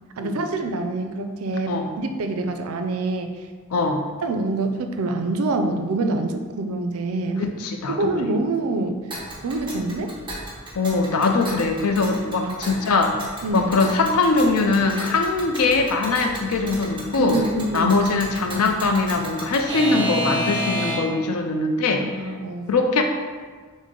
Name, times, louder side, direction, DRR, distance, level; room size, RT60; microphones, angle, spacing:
voice 1, 0.2-3.3 4.2-7.5 7.9-9.0 9.4-10.1 12.4-12.6 13.4-13.7 17.2-18.0 22.0-22.7, right 2 dB, 80° right, 6 dB, 0.4 m, -26 dB
voice 2, 3.7-4.0 7.4-8.3 10.8-13.2 13.5-17.4 17.7-22.1 22.7-23.0, left 3 dB, 90° left, 4 dB, 0.5 m, -21 dB
Alarm / Clock, 9.1-21.3, equal, 20° right, 0.8 m, -32 dB
6.3 x 2.1 x 3.7 m, 1.5 s
head